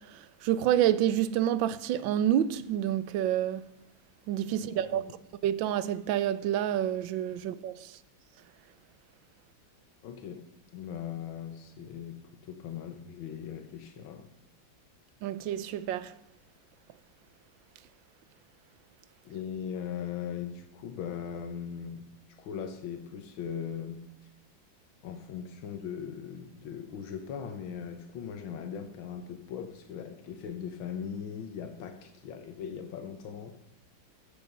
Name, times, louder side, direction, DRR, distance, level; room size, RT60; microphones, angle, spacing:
voice 1, 0.0-3.7 4.3-5.0 5.4-8.0 15.2-16.1, right 11 dB, 75° right, 1.4 m, -28 dB
voice 2, 4.6-5.1 10.0-10.5 10.7-14.3 19.3-22.0 22.4-24.0 25.0-33.6, left 8 dB, 85° left, 1.7 m, -39 dB
14.5 x 8.5 x 5.3 m
omnidirectional pair, 2.1 m